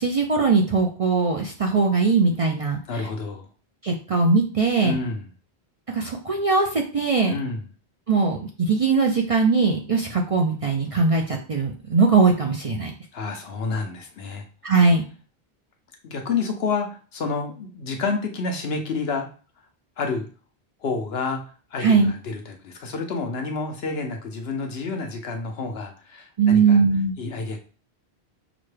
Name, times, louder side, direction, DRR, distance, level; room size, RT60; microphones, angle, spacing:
voice 1, 0.0-3.1 3.8-5.0 5.9-7.3 8.1-12.9 14.6-15.0 21.8-22.1 26.4-27.1, right 4 dB, 45° right, 1 dB, 0.5 m, -20 dB
voice 2, 2.9-3.5 4.8-5.2 7.3-7.6 13.1-14.5 16.0-19.3 20.0-20.3 20.8-21.4 21.7-26.8 27.2-27.6, left 4 dB, 70° left, 4 dB, 1.0 m, -29 dB
6.0 x 2.2 x 3.2 m, 0.38 s
omnidirectional pair, 1.1 m